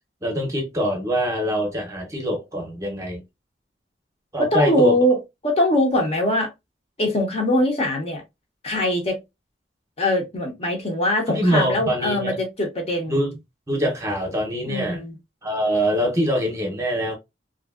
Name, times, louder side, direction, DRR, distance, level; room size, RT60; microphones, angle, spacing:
voice 1, 0.2-3.2 4.3-5.0 11.3-12.4 13.1-13.4 13.7-15.0 15.4-17.2, equal, 15° right, 0.7 m, -24 dB
voice 2, 4.4-6.5 7.0-8.2 8.6-9.2 10.0-13.2 14.7-15.1, left 1 dB, 35° left, 0.7 m, -22 dB
2.7 x 2.6 x 2.3 m
head